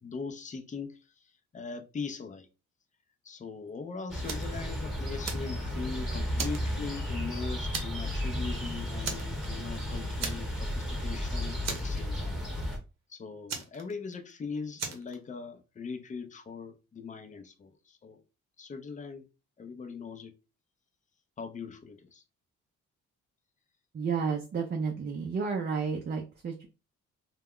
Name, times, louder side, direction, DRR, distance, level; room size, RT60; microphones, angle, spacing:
voice 1, 0.0-2.5 3.2-12.4 13.1-18.2 18.6-19.3 19.6-20.3 21.4-22.2, left 5 dB, 25° left, 0.5 m, -40 dB
sound 1, 4.1-12.8, left 1 dB, ahead, 0.9 m, -33 dB
Fire, 4.2-4.6 5.0-5.9 6.4-7.3 7.7-8.1 8.4-8.6 9.0-9.8 10.2-10.8 11.0-11.2 11.6-12.4 13.5-14.3 14.8-15.1, right 5 dB, 60° right, 0.8 m, -37 dB
voice 2, 23.9-26.7, right 5 dB, 35° right, 0.5 m, -31 dB
2.3 x 2.0 x 3.5 m
cardioid pair, 90°, 30 cm